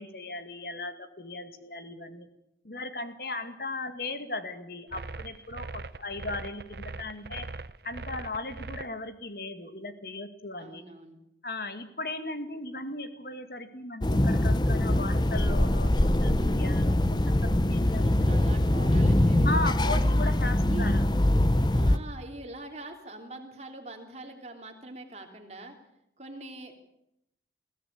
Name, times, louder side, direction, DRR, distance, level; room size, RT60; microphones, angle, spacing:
voice 1, 0.0-2.3 2.6-7.5 7.8-10.8 11.4-18.3 19.4-21.0, left 2 dB, 55° left, 9 dB, 2.1 m, -37 dB
sound 1, 4.9-8.8, right 3 dB, 65° right, 0.8 m, -40 dB
voice 2, 10.6-11.2 17.6-19.8 20.7-21.0 21.7-25.8 26.2-26.7, right 1 dB, 40° right, 4 dB, 3.2 m, -43 dB
sound 2, 14.0-22.0, left 1 dB, 25° left, 0.8 m, -23 dB
21.0 x 16.5 x 8.7 m, 0.82 s
head